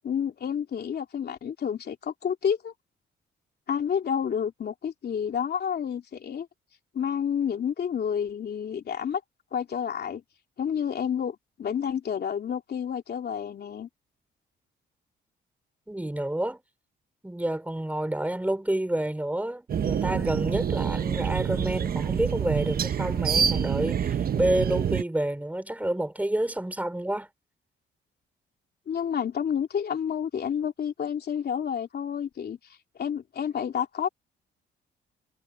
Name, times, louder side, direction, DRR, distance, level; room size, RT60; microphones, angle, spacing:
voice 1, 0.0-2.7 3.7-6.5 6.9-9.2 9.5-10.2 10.6-13.9 28.9-32.6 33.0-34.1, left 8 dB, 55° left, 3.0 m, -29 dB
voice 2, 15.9-16.6 17.2-27.3, right 1 dB, 5° right, 5.1 m, -29 dB
sound 1, 19.7-25.0, right 8 dB, 50° right, 1.0 m, -27 dB
cardioid pair, 90°, 20 cm